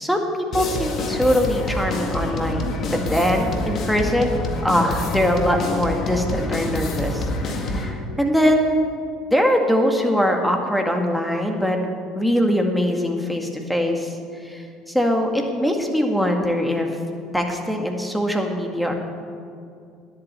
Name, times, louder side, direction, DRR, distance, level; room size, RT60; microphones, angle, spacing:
voice 1, 0.0-4.3 4.6-8.9 9.3-11.8 12.1-14.1 14.4-17.0 17.3-18.9, equal, ahead, 2 dB, 2.0 m, -22 dB
sound 1, 0.5-7.9, left 2 dB, 50° left, 1.8 m, -27 dB
10.5 x 8.5 x 8.2 m, 2.4 s
hypercardioid pair, 65°, 0 cm